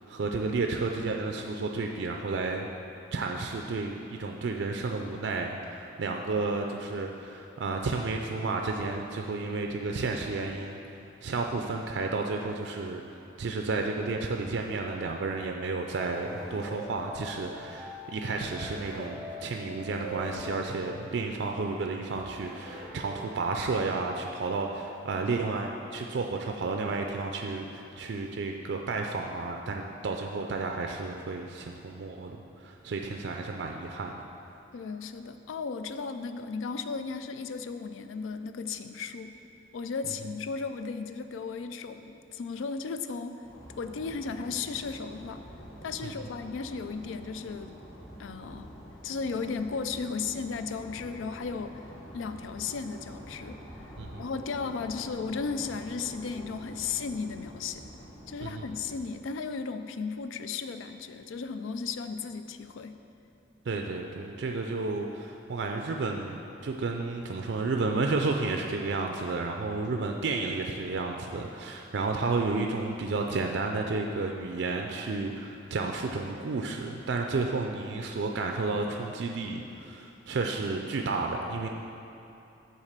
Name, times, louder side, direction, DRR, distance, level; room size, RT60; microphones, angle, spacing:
voice 1, 0.0-2.7 3.1-10.8 11.2-34.1 46.0-46.1 54.0-54.2 58.4-58.7 63.7-66.4 66.6-81.7, right 3 dB, 65° right, 2 dB, 0.4 m, -32 dB
sound 1, 16.1-23.8, equal, ahead, 0.8 m, -43 dB
voice 2, 34.7-39.4 39.7-43.4 43.8-45.4 45.8-47.8 48.2-48.7 49.0-51.7 52.1-53.6 54.2-57.8 58.3-62.9, left 5 dB, 85° left, 9 dB, 0.4 m, -35 dB
sound 2, 43.4-59.0, equal, 30° left, 1.8 m, -47 dB
7.2 x 4.2 x 6.6 m, 2.8 s
head